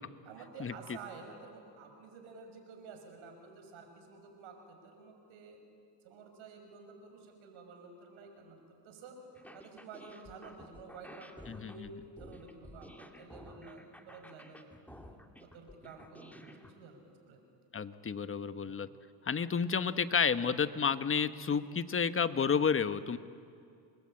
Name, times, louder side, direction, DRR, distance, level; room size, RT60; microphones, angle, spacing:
voice 1, 0.2-5.6 6.0-9.2 9.5-17.0 17.3-17.4 18.6-18.8, right 4 dB, 80° right, 4 dB, 5.8 m, -51 dB
sound 1, 9.3-16.7, left 1 dB, 5° left, 2.1 m, -53 dB
voice 2, 11.5-11.9 17.7-18.9 19.3-23.2, left 6 dB, 25° left, 11 dB, 1.2 m, -31 dB
28.0 x 21.5 x 8.8 m, 2.3 s
cardioid pair, 100°, 46 cm